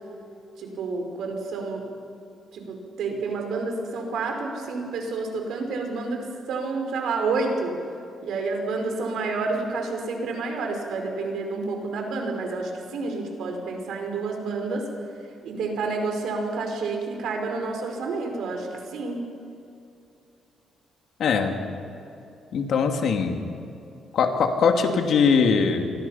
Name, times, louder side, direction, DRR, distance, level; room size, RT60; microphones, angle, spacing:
voice 1, 0.6-1.9 2.5-7.7 8.2-14.9 15.4-19.2, right 3 dB, 75° right, 3 dB, 5.1 m, -29 dB
voice 2, 21.2-21.6 22.5-23.4 24.1-25.9, left 5 dB, 60° left, 4 dB, 2.6 m, -21 dB
29.0 x 24.0 x 5.8 m, 2.7 s
cardioid pair, 145°, 0 cm